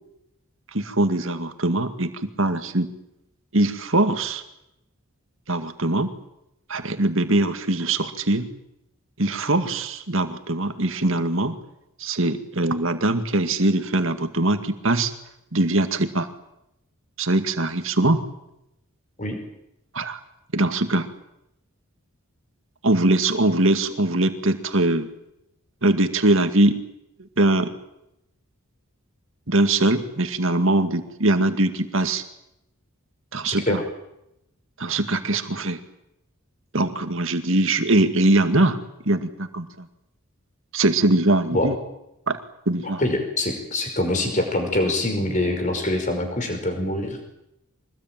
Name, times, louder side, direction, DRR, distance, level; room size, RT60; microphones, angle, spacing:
voice 1, 0.7-2.9 3.5-4.4 5.5-6.1 6.7-8.5 9.2-11.6 12.0-15.1 15.5-16.3 17.2-18.2 19.9-20.2 20.5-21.1 22.8-25.1 25.8-26.8 27.4-27.7 29.5-32.2 33.3-33.8 34.8-35.8 36.7-38.8 39.1-39.9 40.7-41.8 42.3-42.4 42.7-43.0, right 2 dB, 60° right, 8 dB, 2.1 m, -22 dB
voice 2, 33.5-33.8 41.5-41.7 43.0-47.2, left 1 dB, 35° left, 5 dB, 5.3 m, -24 dB
24.5 x 20.0 x 9.2 m, 0.84 s
head